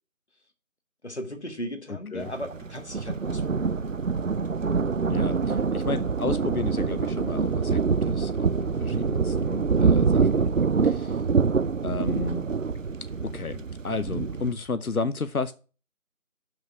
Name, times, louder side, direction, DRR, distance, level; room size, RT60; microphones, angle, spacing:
voice 1, 1.0-3.9, equal, 50° left, 1.6 m, -37 dB
voice 2, 1.9-2.3 5.1-10.5 10.8-11.2 11.8-12.5 13.2-15.5, left 4 dB, 85° left, 0.8 m, -32 dB
Thunder, 2.2-14.5, right 5 dB, 65° right, 0.5 m, -25 dB
7.0 x 6.3 x 6.1 m
figure-of-eight pair, 175°, 42 cm